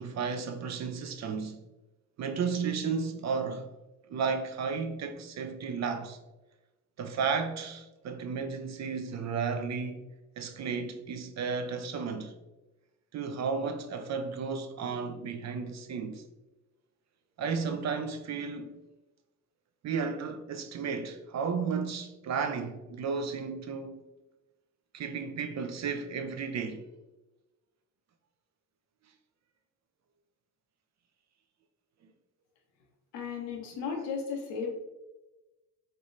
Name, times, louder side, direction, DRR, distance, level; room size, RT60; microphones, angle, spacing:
voice 1, 0.0-1.6 2.2-3.7 4.1-6.2 7.0-10.0 10.4-12.3 13.1-16.2 17.4-18.7 19.8-24.0 24.9-26.9, right 5 dB, 40° right, 0.4 m, -33 dB
voice 2, 33.1-34.7, left 5 dB, 75° left, 0.8 m, -35 dB
3.3 x 2.8 x 2.5 m
hypercardioid pair, 40°, 44 cm